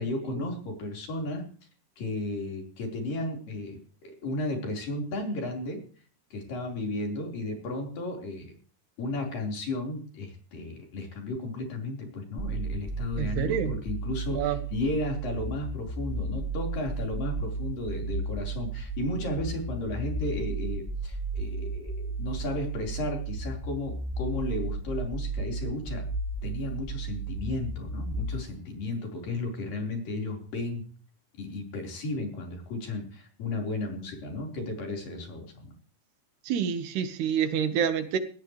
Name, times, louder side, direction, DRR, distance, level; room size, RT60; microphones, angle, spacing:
voice 1, 0.0-1.4 2.0-5.8 6.3-8.6 9.0-26.1 26.4-30.9 31.4-35.7, left 2 dB, 55° left, 1 dB, 6.1 m, -34 dB
sound 1, 12.4-28.4, right 3 dB, 10° left, 4.0 m, -33 dB
voice 2, 13.2-13.7 14.3-14.6 36.5-38.2, right 8 dB, 75° right, 9 dB, 3.5 m, -27 dB
19.5 x 18.0 x 3.3 m, 0.43 s
omnidirectional pair, 4.8 m